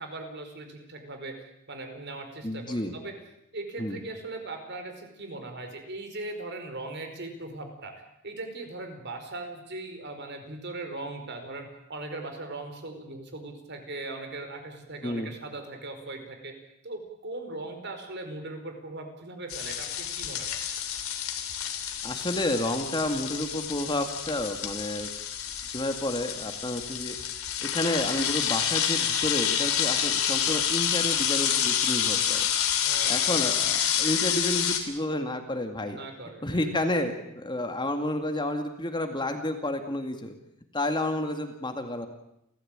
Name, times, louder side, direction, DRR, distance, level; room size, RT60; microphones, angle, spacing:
voice 1, 0.0-3.1 3.5-7.9 8.2-16.5 16.8-20.6 32.8-33.7 35.9-36.7, right 2 dB, 55° right, 6 dB, 4.6 m, -39 dB
voice 2, 2.4-2.9 3.8-4.0 15.0-15.3 22.0-25.1 25.7-27.2 27.6-32.5 33.1-36.0 36.4-40.4 40.7-42.1, left 1 dB, 20° left, 6 dB, 2.2 m, -30 dB
sound 1, 19.5-34.8, left 9 dB, 80° left, 3.3 m, -28 dB
30.0 x 15.0 x 8.9 m, 0.82 s
head